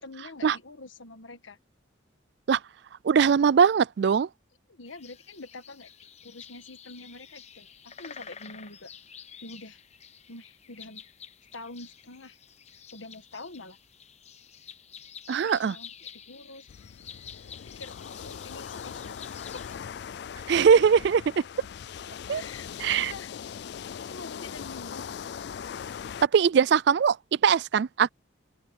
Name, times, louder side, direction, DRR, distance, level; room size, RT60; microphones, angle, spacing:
voice 1, 0.0-1.6 4.7-8.9 9.4-9.8 10.3-11.0 11.5-12.4 12.9-13.8 15.4-16.7 17.7-18.0 18.2-19.2 19.5-19.6 20.6-20.7 22.3-23.3 24.0-25.0, left 3 dB, 75° left, 1.5 m, -45 dB
voice 2, 3.0-4.3 15.3-15.7 20.5-21.3 22.3-22.4 22.8-23.1 26.2-27.2 27.4-28.1, right 6 dB, 55° right, 0.3 m, -21 dB
sound 1, 4.9-19.8, left 8 dB, 35° left, 1.0 m, -49 dB
sound 2, 16.7-26.3, left 7 dB, 55° left, 0.3 m, -40 dB
open air
head